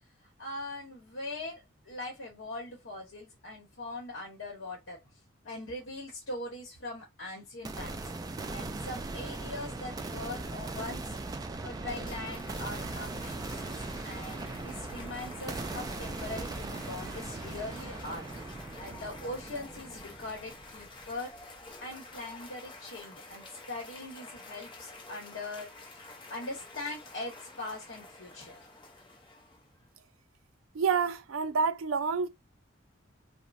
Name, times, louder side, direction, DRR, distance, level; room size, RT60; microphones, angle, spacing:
voice 1, 0.4-5.0 5.4-8.0 8.5-11.0 11.6-13.8 14.0-18.3 18.8-21.3 21.8-25.7 26.3-28.6, left 2 dB, 70° left, 0.9 m, -41 dB
sound 1, 7.6-21.6, right 2 dB, 20° right, 0.3 m, -39 dB
Cheering / Applause, 11.3-29.9, left 2 dB, 25° left, 0.7 m, -50 dB
voice 2, 30.7-32.3, right 5 dB, 90° right, 0.4 m, -28 dB
3.1 x 2.0 x 2.5 m
head